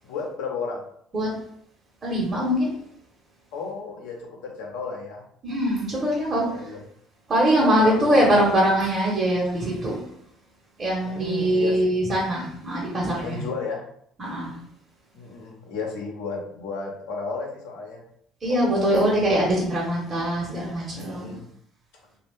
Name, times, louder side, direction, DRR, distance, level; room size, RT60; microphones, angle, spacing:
voice 1, 0.0-0.8 3.5-5.2 6.3-6.8 7.6-8.4 11.0-11.9 13.2-13.8 15.1-18.0 18.5-18.6 18.9-19.2 20.9-21.5, left 4 dB, 85° left, -1 dB, 0.7 m, -33 dB
voice 2, 2.0-2.7 5.4-6.5 7.3-10.0 10.8-13.4 14.2-14.5 18.4-21.3, equal, 35° right, -3 dB, 1.0 m, -22 dB
2.5 x 2.3 x 3.5 m, 0.69 s
supercardioid pair, 70°, 0 cm